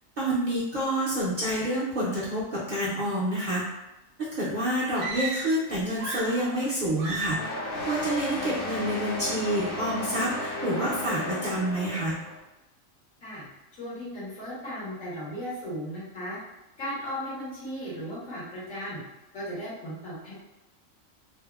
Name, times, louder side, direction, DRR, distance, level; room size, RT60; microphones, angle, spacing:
voice 1, 0.2-3.6 4.4-7.5 7.9-12.1, right 1 dB, 50° right, -8 dB, 0.6 m, -28 dB
sound 1, 4.9-5.7 5.9-6.7 7.0-7.5, right 2 dB, 70° right, 0.9 m, -34 dB
sound 2, 7.3-12.4, left 1 dB, 55° left, 0.7 m, -34 dB
voice 2, 13.7-16.4 16.8-19.0 19.3-20.3, equal, 75° left, -8 dB, 1.5 m, -36 dB
3.5 x 2.0 x 2.3 m, 1.0 s
omnidirectional pair, 1.4 m